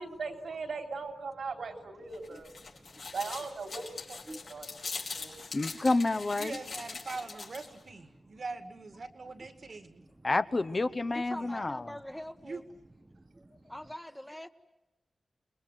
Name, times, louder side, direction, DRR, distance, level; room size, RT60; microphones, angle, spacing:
voice 1, 0.0-2.5 3.1-3.8 4.1-4.7 5.1-5.3, right 4 dB, 80° right, 4 dB, 3.6 m, -39 dB
sound 1, 2.1-7.8, left 4 dB, 80° left, 5.0 m, -42 dB
voice 2, 2.7-3.1 4.3-5.6 10.2-10.4 13.1-13.7, right 1 dB, 25° right, 4 dB, 1.0 m, -53 dB
voice 3, 5.5-6.5 10.2-11.9, left 2 dB, 40° left, 10 dB, 1.0 m, -29 dB
voice 4, 6.3-10.1 11.3-11.7 12.4-12.6, right 3 dB, 60° right, 8 dB, 2.2 m, -42 dB
voice 5, 11.1-12.6 13.7-14.5, left 1 dB, 10° left, 7 dB, 1.3 m, -42 dB
29.0 x 21.0 x 9.2 m, 1.0 s
wide cardioid pair, 80°, 0 cm